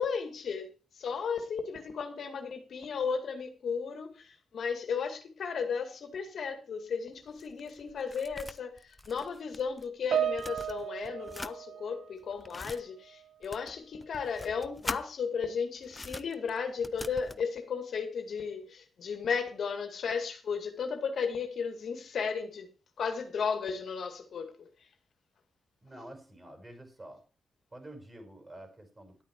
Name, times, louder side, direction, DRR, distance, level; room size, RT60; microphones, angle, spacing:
voice 1, 0.0-22.7 23.0-24.7, left 6 dB, 70° left, 2.1 m, -34 dB
sound 1, 7.1-9.9 10.2-11.6 12.2-12.8 13.4-15.0 15.8-17.4, left 2 dB, 25° left, 0.8 m, -43 dB
Piano, 10.1-12.8 13.0-13.4 14.1-14.3, right 9 dB, 70° right, 1.1 m, -35 dB
voice 2, 25.8-27.2 27.7-29.2, right 1 dB, 25° right, 5.6 m, -48 dB
12.0 x 8.6 x 4.6 m
supercardioid pair, 55°, 0 cm